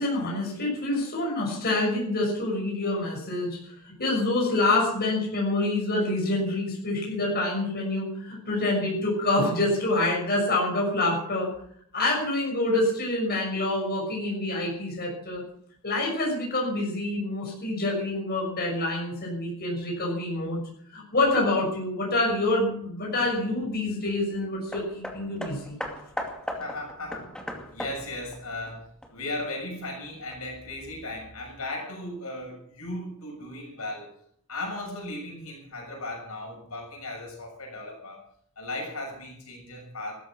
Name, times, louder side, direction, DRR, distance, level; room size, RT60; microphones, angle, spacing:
voice 1, 0.0-11.5 11.9-15.4 15.8-20.6 20.9-25.8, left 2 dB, 45° left, -2 dB, 6.3 m, -27 dB
Hammer, 24.7-29.5 30.3-30.4, equal, 5° left, 2.4 m, -37 dB
voice 2, 26.6-27.3 27.7-34.1 34.5-38.2 38.6-40.1, left 2 dB, 80° left, 1 dB, 6.6 m, -36 dB
16.0 x 13.5 x 6.1 m, 0.64 s
head